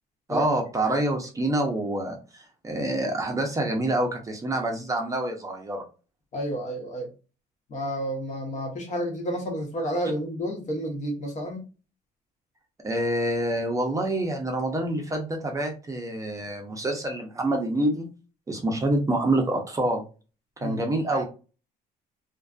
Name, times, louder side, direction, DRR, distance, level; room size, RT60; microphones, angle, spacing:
voice 1, 0.3-5.8 12.8-18.1 18.5-20.0 20.6-21.2, right 1 dB, 20° right, 0.6 m, -27 dB
voice 2, 6.3-7.1 7.7-11.7 20.6-20.8, equal, 45° left, 1.0 m, -30 dB
2.5 x 2.4 x 2.3 m
cardioid pair, 110°, 17 cm